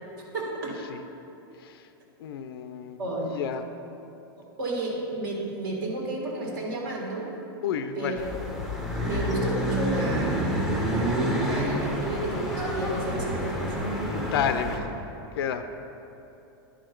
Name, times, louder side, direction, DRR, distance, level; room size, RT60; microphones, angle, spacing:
voice 1, 0.3-0.7 3.0-3.3 4.6-7.3 7.9-8.2 9.0-13.7, right 2 dB, 60° right, -2 dB, 1.8 m, -32 dB
voice 2, 2.2-3.0 3.3-3.6 7.6-8.3 13.9-14.9 15.4-15.6, left 8 dB, 70° left, 9 dB, 0.4 m, -30 dB
sound 1, 8.2-14.8, equal, 5° right, 0.6 m, -28 dB
10.5 x 5.0 x 4.5 m, 2.9 s
supercardioid pair, 170°, 13 cm